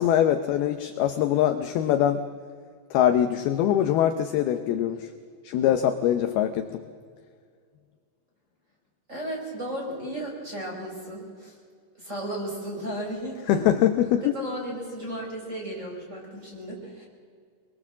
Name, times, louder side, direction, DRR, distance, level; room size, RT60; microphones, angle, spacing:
voice 1, 0.0-2.2 2.9-5.1 5.4-6.8 13.5-14.3, left 10 dB, 80° left, 8 dB, 2.3 m, -23 dB
voice 2, 9.1-11.5 11.9-13.6 14.2-17.1, right 1 dB, 15° right, -2 dB, 5.1 m, -34 dB
24.5 x 22.0 x 7.4 m, 2.1 s
omnidirectional pair, 5.3 m